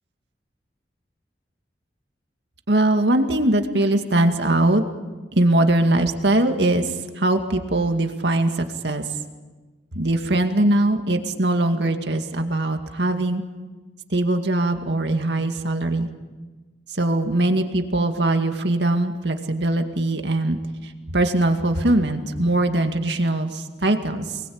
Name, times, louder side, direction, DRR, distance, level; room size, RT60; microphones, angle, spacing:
voice 1, 2.7-4.8 5.3-9.0 9.9-13.4 14.1-16.1 16.9-20.6 21.1-24.4, right 1 dB, 70° right, 5 dB, 2.2 m, -21 dB
28.0 x 20.5 x 8.8 m, 1.3 s
head